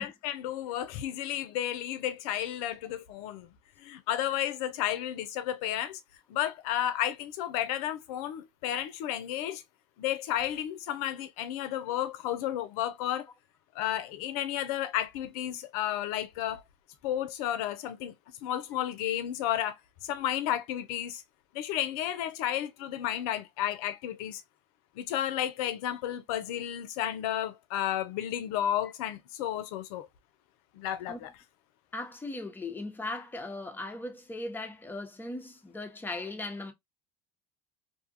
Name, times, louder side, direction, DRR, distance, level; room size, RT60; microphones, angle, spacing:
voice 1, 0.0-3.5 3.8-6.0 6.3-9.6 10.0-13.3 13.7-16.6 17.0-18.1 18.4-19.7 20.0-21.2 21.5-24.4 25.0-30.1 30.7-31.3, left 11 dB, 70° left, 0.6 m, -32 dB
voice 2, 31.9-36.7, left 2 dB, 10° left, 0.8 m, -38 dB
2.7 x 2.4 x 2.6 m
hypercardioid pair, 80°, 19 cm